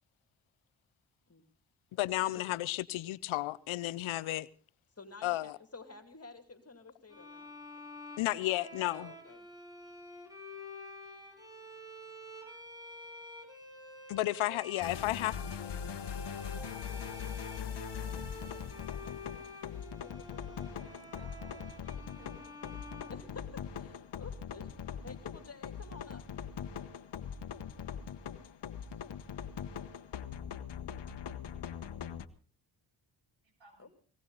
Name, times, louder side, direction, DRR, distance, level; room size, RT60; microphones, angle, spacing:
voice 1, 1.9-4.5 5.2-5.6 8.2-9.1 14.1-15.4, left 17 dB, 90° left, 0.7 m, -33 dB
voice 2, 5.0-7.5 8.9-9.5 18.9-19.2 19.5-21.2 23.1-24.7 25.0-26.7 33.8-33.9, left 3 dB, 30° left, 2.6 m, -52 dB
sound 1, 7.1-23.9, left 1 dB, 10° right, 7.6 m, -49 dB
sound 2, 14.8-32.3, left 8 dB, 60° left, 1.3 m, -41 dB
voice 3, 21.0-22.8 28.9-29.0 33.4-33.9, right 1 dB, 70° right, 7.2 m, -62 dB
20.0 x 17.0 x 4.0 m
supercardioid pair, 55°, 47 cm